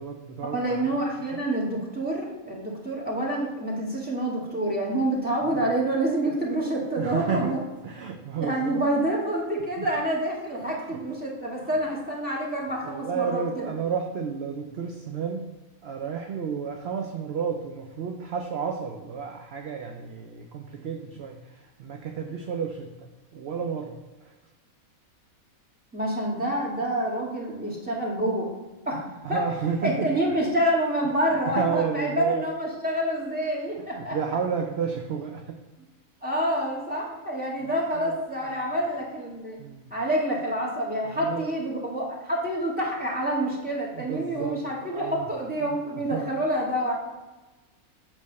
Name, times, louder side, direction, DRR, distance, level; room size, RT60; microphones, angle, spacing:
voice 1, 0.0-0.9 1.3-1.5 5.4-5.7 7.0-7.5 7.8-8.8 9.8-9.9 10.8-11.2 11.6-11.8 12.8-15.5 15.8-24.4 29.2-30.1 31.5-32.5 33.9-35.6 37.6-37.7 38.0-38.1 38.4-38.8 39.6-39.9 41.0-41.5 43.9-45.3 45.6-45.8 46.1-46.4, right 6 dB, 55° right, 2 dB, 0.8 m, -32 dB
voice 2, 0.5-7.6 8.4-13.6 25.9-28.5 28.9-29.4 29.8-34.2 36.2-39.6 39.9-46.9, right 1 dB, 5° right, -4 dB, 2.1 m, -27 dB
8.4 x 3.4 x 6.5 m, 1.2 s
omnidirectional pair, 1.5 m